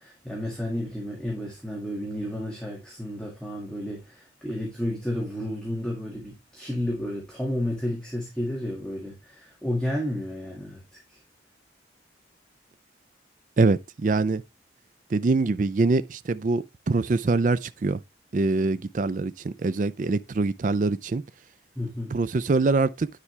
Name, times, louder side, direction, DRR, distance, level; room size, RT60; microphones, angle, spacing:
voice 1, 0.0-11.2 21.8-22.2, left 1 dB, 5° left, 1.8 m, -32 dB
voice 2, 13.6-14.4 15.1-18.0 18.3-21.2 22.1-23.1, right 3 dB, 40° right, 0.4 m, -24 dB
9.9 x 4.8 x 3.2 m
head